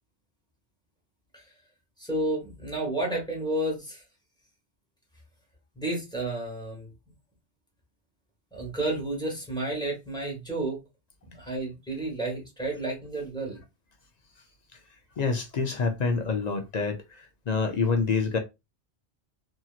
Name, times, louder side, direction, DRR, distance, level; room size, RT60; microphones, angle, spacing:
voice 1, 2.0-4.0 5.7-6.9 8.5-10.8 11.2-13.6, right 2 dB, 5° left, 1.3 m, -31 dB
voice 2, 15.2-17.0 17.5-18.4, left 4 dB, 55° left, 0.5 m, -26 dB
2.8 x 2.7 x 2.3 m
omnidirectional pair, 1.1 m